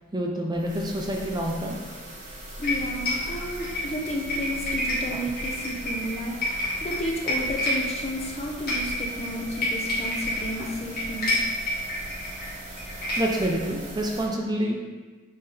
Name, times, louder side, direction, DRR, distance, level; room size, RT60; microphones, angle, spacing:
voice 1, 0.1-1.8 2.5-2.6 3.2-3.7 5.1-5.2 6.4-6.6 10.6-10.7 13.2-14.8, right 1 dB, 20° right, 0 dB, 0.6 m, -28 dB
sound 1, 0.5-14.2, right 1 dB, 35° right, 1.3 m, -41 dB
sound 2, 2.6-13.5, left 1 dB, 45° left, 1.8 m, -30 dB
voice 2, 2.6-11.4, equal, 30° left, 0 dB, 0.7 m, -32 dB
7.6 x 3.8 x 3.4 m, 1.3 s
head